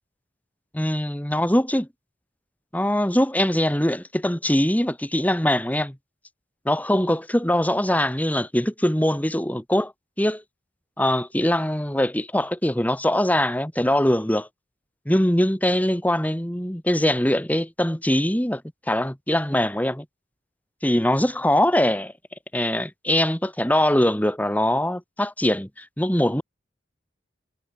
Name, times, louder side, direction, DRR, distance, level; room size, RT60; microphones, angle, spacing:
voice 1, 0.7-1.9 2.7-6.0 6.7-9.9 10.2-10.4 11.0-14.5 15.1-18.6 18.9-20.0 20.8-22.1 22.5-26.4, left 1 dB, 10° left, 2.3 m, -22 dB
head